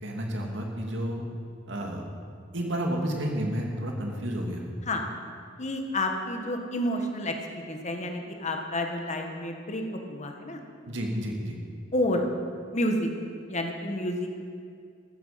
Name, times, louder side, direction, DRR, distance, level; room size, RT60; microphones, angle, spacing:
voice 1, 0.0-1.2 1.7-2.0 2.5-4.6 10.9-11.6, equal, 65° right, 1 dB, 2.5 m, -31 dB
voice 2, 5.6-9.8 10.1-10.6 11.9-12.2 12.7-13.1 13.5-14.4, left 1 dB, 35° left, 4 dB, 1.5 m, -30 dB
14.5 x 14.0 x 5.8 m, 2.4 s
head